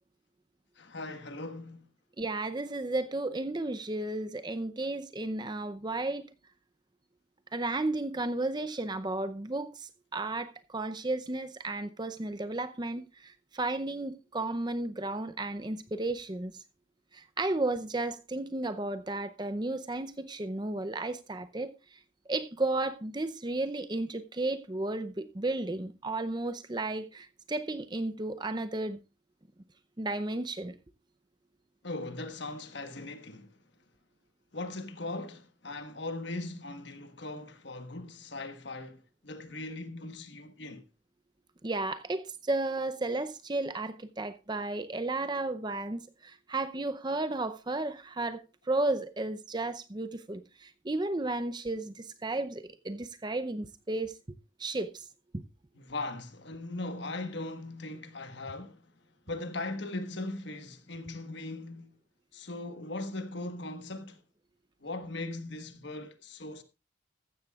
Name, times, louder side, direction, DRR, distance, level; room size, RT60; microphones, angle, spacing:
voice 1, 0.8-1.9 31.8-33.6 34.5-40.8 55.7-58.8 59.3-61.9 62.3-64.2 64.8-66.6, left 2 dB, 60° left, 1.4 m, -39 dB
voice 2, 2.2-6.3 7.5-16.5 17.1-21.7 22.3-29.0 30.0-30.8 41.6-48.4 48.7-54.1 54.6-55.0 55.3-55.4, right 2 dB, 20° right, 0.6 m, -33 dB
14.5 x 13.0 x 2.4 m
head